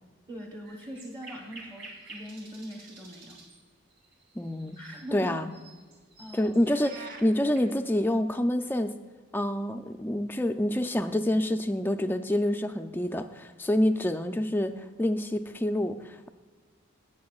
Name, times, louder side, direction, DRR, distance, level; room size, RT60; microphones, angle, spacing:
voice 1, 0.3-3.4 4.8-5.3 6.2-6.5, equal, 20° right, -1 dB, 1.0 m, -41 dB
sound 1, 0.6-7.6, right 2 dB, 55° right, 2.6 m, -50 dB
voice 2, 4.4-4.8 5.1-5.5 6.3-8.9 9.3-14.7 15.0-16.3, left 1 dB, 10° left, 8 dB, 0.3 m, -27 dB
sound 2, 6.7-7.3, right 4 dB, 40° right, 0.9 m, -44 dB
18.0 x 6.7 x 2.4 m, 1.4 s
head